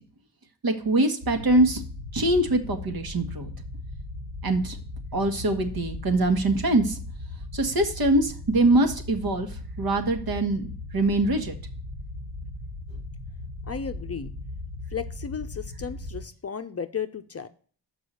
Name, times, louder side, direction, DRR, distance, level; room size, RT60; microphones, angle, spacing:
voice 1, 0.6-1.8 2.1-3.5 4.4-4.8 5.1-7.0 7.5-11.5, right 2 dB, 55° right, 5 dB, 1.5 m, -23 dB
sound 1, 1.2-16.2, left 2 dB, 85° right, 3.6 m, -38 dB
voice 2, 13.7-14.3 14.9-17.5, left 6 dB, 35° left, 9 dB, 0.6 m, -34 dB
6.2 x 4.8 x 6.6 m, 0.44 s
cardioid pair, 55°, 43 cm